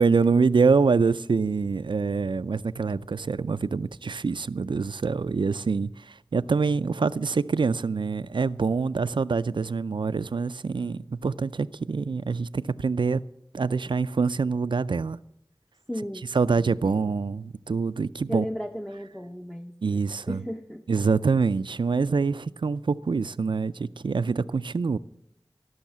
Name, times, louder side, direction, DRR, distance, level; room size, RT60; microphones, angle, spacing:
voice 1, 0.0-13.2 13.5-15.2 16.3-18.5 19.8-20.4 20.9-25.0, right 4 dB, 75° right, 0.4 m, -25 dB
voice 2, 15.9-16.2 16.5-17.1 18.3-20.0 20.3-20.8, equal, 5° left, 0.7 m, -35 dB
17.5 x 6.3 x 7.4 m
wide cardioid pair, 45°, 8 cm